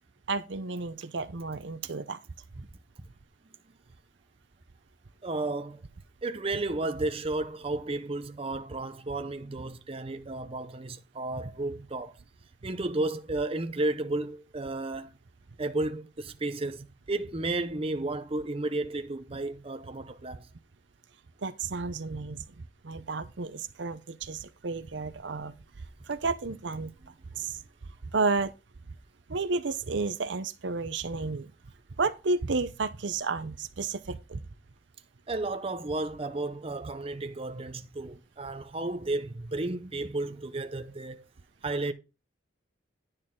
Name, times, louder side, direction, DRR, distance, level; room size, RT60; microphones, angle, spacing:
voice 1, 0.3-2.2 21.4-22.4 22.8-25.5 26.1-26.9 27.4-27.6 28.1-28.5 29.3-31.5 32.0-34.4, right 4 dB, 70° right, 0.7 m, -31 dB
voice 2, 5.2-5.8 6.2-12.2 12.6-15.1 15.6-20.5 27.3-27.4 35.3-41.2 41.6-41.9, right 2 dB, 30° right, 0.7 m, -33 dB
10.5 x 6.6 x 3.7 m
head